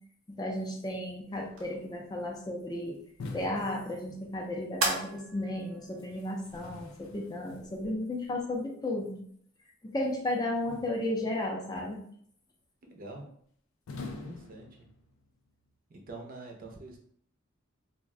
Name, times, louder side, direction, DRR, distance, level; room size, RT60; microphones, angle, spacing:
voice 1, 0.4-3.0 3.3-9.2 9.8-12.0, left 1 dB, 20° left, 0 dB, 0.4 m, -34 dB
sound 1, 1.3-8.2, right 3 dB, 85° right, 0.8 m, -40 dB
sound 2, 3.2-4.7 6.0-8.0 10.7-11.5 13.9-15.3, left 3 dB, 85° left, 0.4 m, -46 dB
voice 2, 12.9-13.3 14.2-14.7 15.9-17.0, right 2 dB, 45° right, 2 dB, 0.5 m, -45 dB
2.4 x 2.1 x 3.5 m, 0.63 s
head